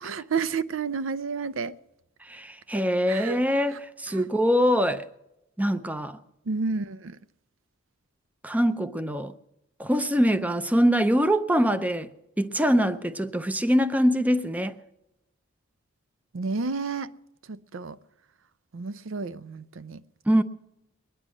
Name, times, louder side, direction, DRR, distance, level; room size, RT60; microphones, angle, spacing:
voice 1, 0.0-1.8 3.1-3.4 3.7-3.8 4.1-4.3 6.5-7.2 16.3-17.1 17.5-18.0 18.7-20.0, right 4 dB, 70° right, 0.5 m, -31 dB
voice 2, 2.2-5.1 5.6-6.2 8.4-9.3 9.8-12.1 12.4-14.8 20.3-20.4, equal, 5° right, 0.5 m, -23 dB
22.0 x 10.0 x 6.1 m
head